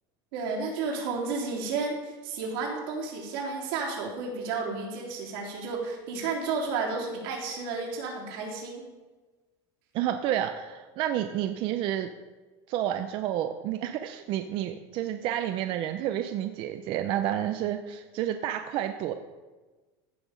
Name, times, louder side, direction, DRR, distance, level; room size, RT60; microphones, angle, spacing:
voice 1, 0.3-8.8, right 4 dB, 85° right, -2 dB, 3.3 m, -32 dB
voice 2, 9.9-12.1 12.7-19.1, right 11 dB, 45° right, 7 dB, 0.6 m, -30 dB
15.5 x 6.0 x 5.1 m, 1.2 s
cardioid pair, 160°, 12 cm